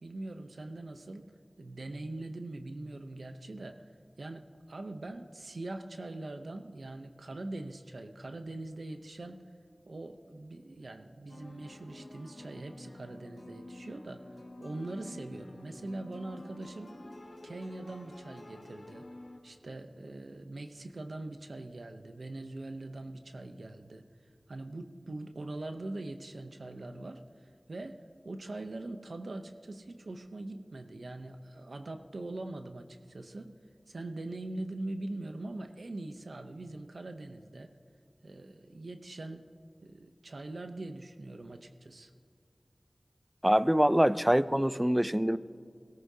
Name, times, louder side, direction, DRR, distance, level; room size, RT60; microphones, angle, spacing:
voice 1, 0.0-1.3 1.6-3.8 4.2-9.4 9.9-14.3 14.6-16.9 17.4-19.1 19.4-24.0 24.5-33.5 33.9-37.7 38.2-39.5 39.8-42.1, right 2 dB, 90° right, 6 dB, 0.7 m, -42 dB
sound 1, 11.3-19.4, left 1 dB, 75° left, 1.8 m, -49 dB
voice 2, 43.4-45.4, equal, 10° right, 14 dB, 0.4 m, -24 dB
22.0 x 17.5 x 2.8 m, 2.3 s
wide cardioid pair, 55°, 0 cm